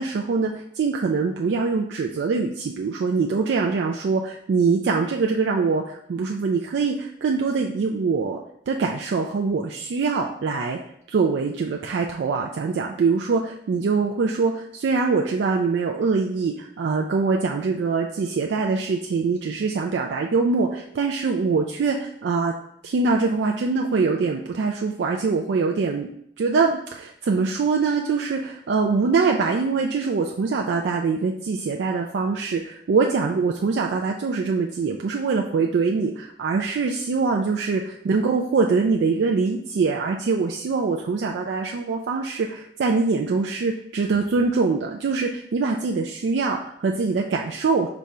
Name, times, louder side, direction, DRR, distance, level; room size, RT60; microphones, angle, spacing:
voice 1, 0.0-8.4 8.7-10.8 11.1-22.5 22.8-26.1 26.4-47.9, right 4 dB, 80° right, 1 dB, 0.3 m, -23 dB
5.0 x 2.3 x 4.1 m, 0.71 s
head